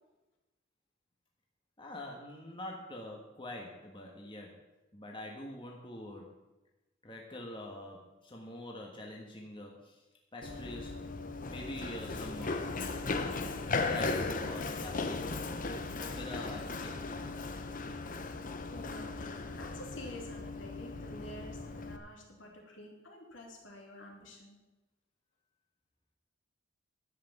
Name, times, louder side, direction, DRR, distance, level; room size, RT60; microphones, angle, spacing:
voice 1, 1.8-4.6 4.9-6.3 7.0-10.0 10.3-11.0 11.5-12.7 13.6-17.0, left 1 dB, 25° left, 0 dB, 1.5 m, -45 dB
Run, 10.4-22.0, left 3 dB, 45° left, 0.9 m, -37 dB
voice 2, 18.3-24.6, left 1 dB, 70° left, 0 dB, 3.0 m, -49 dB
11.5 x 7.8 x 7.2 m, 1.0 s
head